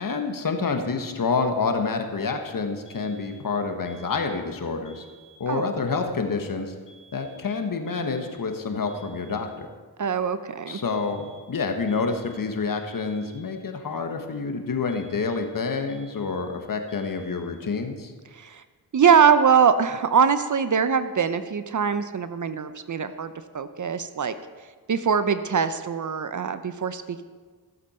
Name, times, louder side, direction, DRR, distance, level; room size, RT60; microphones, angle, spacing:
voice 1, 0.0-5.0 5.4-6.7 7.1-9.7 10.7-18.1, left 4 dB, 55° left, 5 dB, 1.4 m, -28 dB
sound 1, 2.9-3.5 3.9-4.5 4.9-5.5 6.9-7.5 7.9-8.5 8.9-9.5 10.9-11.5 11.9-12.5 12.9-13.5 14.9-15.6 15.9-16.6 16.9-17.6, right 3 dB, 15° left, 2.1 m, -54 dB
voice 2, 10.0-10.8 18.3-18.6 18.9-24.3 24.9-27.2, right 6 dB, 50° right, 12 dB, 0.7 m, -22 dB
15.0 x 7.6 x 4.4 m, 1.5 s
cardioid pair, 55°, 40 cm